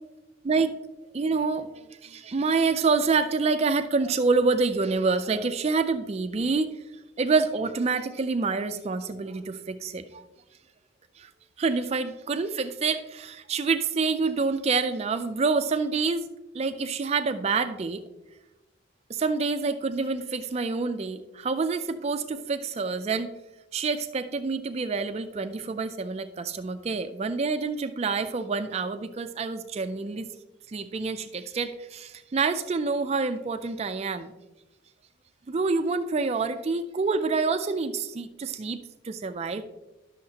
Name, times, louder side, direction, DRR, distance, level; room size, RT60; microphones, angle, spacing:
voice 1, 1.1-6.8 7.2-10.2 11.2-11.3 11.6-16.2 16.5-18.0 19.1-23.3 23.7-30.3 30.7-34.3 35.5-38.8 39.0-39.6, right 4 dB, 30° right, 9 dB, 0.3 m, -27 dB
11.5 x 6.4 x 2.8 m, 1.0 s
head